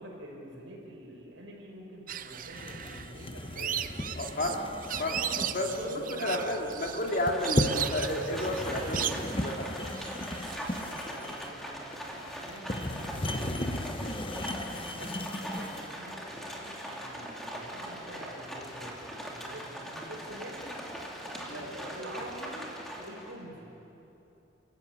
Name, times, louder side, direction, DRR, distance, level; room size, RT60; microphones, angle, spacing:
voice 1, 0.0-3.9 5.5-6.5 10.7-20.6 21.5-22.6 23.0-23.7, right 1 dB, 80° right, -1 dB, 5.6 m, -46 dB
sound 1, 2.1-10.8, right 10 dB, 45° right, 0.6 m, -37 dB
sound 2, 2.5-15.9, left 1 dB, 25° left, 1.0 m, -36 dB
voice 2, 4.2-4.6 5.0-9.7 21.5-21.7, left 1 dB, 45° left, 2 dB, 2.5 m, -32 dB
Livestock farm animals working animals, 7.0-23.4, equal, ahead, 2.6 m, -41 dB
30.0 x 14.5 x 8.7 m, 3.0 s
head